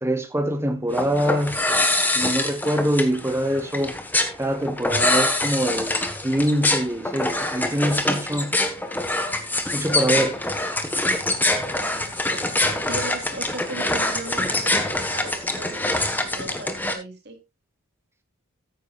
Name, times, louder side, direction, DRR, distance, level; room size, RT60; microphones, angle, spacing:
voice 1, 0.0-1.6 2.1-4.0 4.4-8.6 9.7-10.3, equal, 10° right, 1.2 m, -24 dB
sound 1, 0.9-16.9, left 2 dB, 10° left, 1.3 m, -25 dB
voice 2, 11.6-17.4, right 3 dB, 50° right, 2.7 m, -37 dB
14.0 x 9.5 x 2.5 m
head